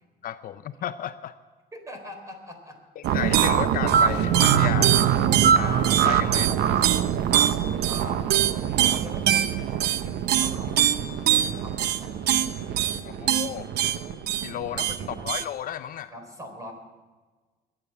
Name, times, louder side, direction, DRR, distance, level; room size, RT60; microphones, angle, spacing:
voice 1, 0.2-1.3 3.0-5.1 5.5-6.5 13.2-13.6 14.4-16.1, left 10 dB, 55° left, 12 dB, 0.6 m, -33 dB
voice 2, 1.7-2.8 6.4-6.6 7.9-12.4 12.8-13.4 15.0-15.1 16.1-16.7, equal, 20° right, 4 dB, 4.1 m, -43 dB
sound 1, 3.0-15.4, right 9 dB, 75° right, 0.8 m, -22 dB
sound 2, 3.6-6.5, left 9 dB, 85° left, 1.2 m, -44 dB
22.0 x 8.8 x 6.9 m, 1.3 s
cardioid pair, 110°, 17 cm